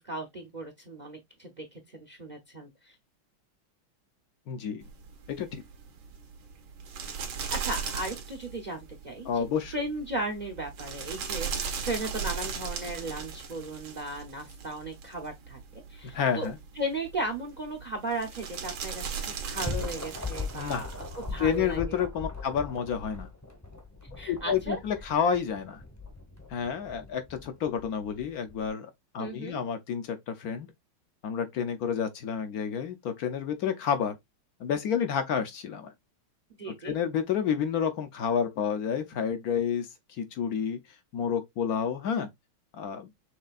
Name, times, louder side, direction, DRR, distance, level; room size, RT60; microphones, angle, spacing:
voice 1, 0.0-2.9 7.5-8.8 9.0-9.4 9.7-15.6 15.9-16.5 16.8-20.9 21.2-22.0 24.2-24.8 29.2-29.6 36.6-36.9, right 1 dB, 50° right, 0.5 m, -36 dB
voice 2, 4.5-4.8 5.3-5.6 9.2-9.7 16.1-16.6 20.5-20.9 21.4-23.3 24.3-25.8 26.5-30.7 31.2-34.2 34.6-35.9 36.7-40.8 41.1-42.3 42.7-43.1, left 7 dB, 65° left, 0.9 m, -30 dB
sound 1, 4.8-21.8, right 6 dB, 85° right, 1.9 m, -38 dB
sound 2, 19.4-28.7, left 3 dB, 15° left, 0.6 m, -40 dB
6.5 x 3.3 x 2.4 m
omnidirectional pair, 2.2 m